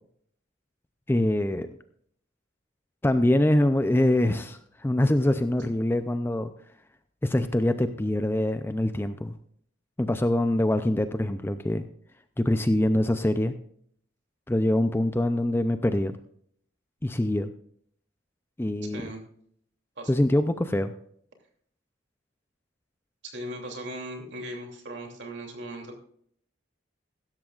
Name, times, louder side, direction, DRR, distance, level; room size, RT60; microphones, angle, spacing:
voice 1, 1.1-1.7 3.0-6.5 7.2-9.3 10.0-11.9 12.4-13.5 14.5-16.2 17.0-17.5 18.6-19.0 20.1-20.9, left 1 dB, 10° left, 10 dB, 0.4 m, -24 dB
voice 2, 23.2-26.0, right 1 dB, 60° right, 2 dB, 2.8 m, -38 dB
15.5 x 13.5 x 2.4 m, 0.64 s
head